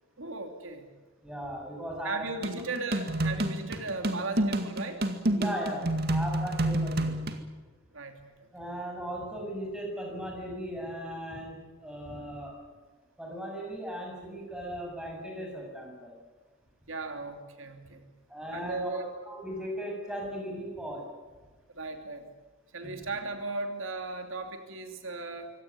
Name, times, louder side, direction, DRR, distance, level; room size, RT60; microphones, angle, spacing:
voice 1, 0.2-0.9 2.0-5.0 7.9-8.5 16.9-18.1 18.5-19.1 21.7-22.3 22.7-25.5, right 3 dB, 85° right, 5 dB, 2.9 m, -37 dB
voice 2, 1.2-2.2 5.3-7.1 8.5-12.5 13.2-16.1 18.3-21.0 22.8-22.9, equal, 5° right, 0 dB, 7.2 m, -37 dB
sound 1, 2.4-7.4, right 1 dB, 50° right, 2.1 m, -29 dB
25.0 x 17.5 x 9.7 m, 1.3 s
head